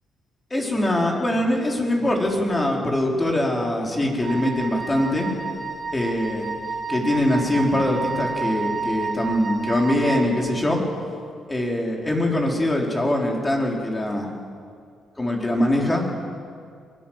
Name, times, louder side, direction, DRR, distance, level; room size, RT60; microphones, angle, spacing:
voice 1, 0.5-5.3 5.9-6.5 6.9-10.8 11.5-14.3 15.2-16.1, left 1 dB, 20° left, 0 dB, 4.8 m, -23 dB
Wind instrument woodwind instrument, 4.2-10.3, right 4 dB, 15° right, 3.5 m, -30 dB
23.0 x 18.0 x 7.7 m, 2.2 s
cardioid pair, 90°, 0 cm